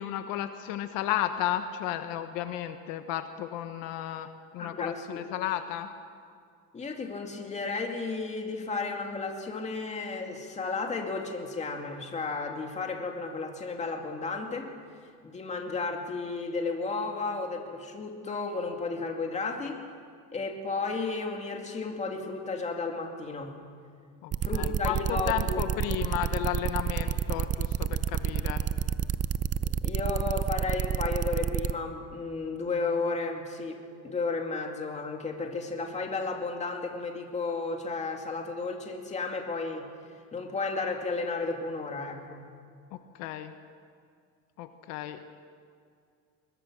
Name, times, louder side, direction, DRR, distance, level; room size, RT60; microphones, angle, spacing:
voice 1, 0.0-4.3 4.5-5.9 24.2-28.6 42.9-43.5 44.6-45.2, left 12 dB, 75° left, 8 dB, 1.3 m, -33 dB
voice 2, 4.6-5.2 6.7-14.7 15.2-19.8 20.3-23.6 24.4-25.6 29.8-39.9 40.3-42.4, left 3 dB, 20° left, 2 dB, 2.5 m, -33 dB
sound 1, 24.3-31.7, right 9 dB, 25° right, 0.5 m, -29 dB
22.5 x 21.5 x 6.3 m, 2.2 s
cardioid pair, 145°, 33 cm